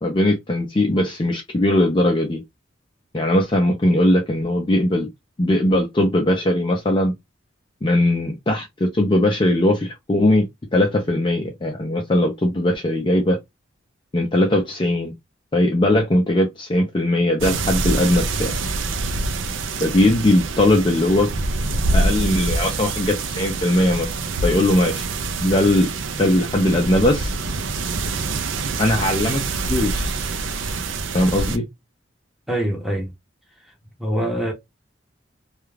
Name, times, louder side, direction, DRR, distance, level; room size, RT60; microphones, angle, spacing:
voice 1, 0.0-2.4 3.1-5.1 5.4-7.1 7.8-10.5 10.7-13.4 14.1-15.1 15.5-18.5 19.8-21.3 21.9-24.1 24.4-25.1 25.4-25.9 26.2-27.3 28.8-29.4 29.7-30.2 31.1-31.6, left 1 dB, 25° left, 0.4 m, -19 dB
sound 1, 17.4-31.6, right 3 dB, 80° right, 0.4 m, -25 dB
voice 2, 32.5-33.1 34.0-34.5, right 1 dB, ahead, 0.7 m, -24 dB
2.3 x 2.2 x 3.1 m
head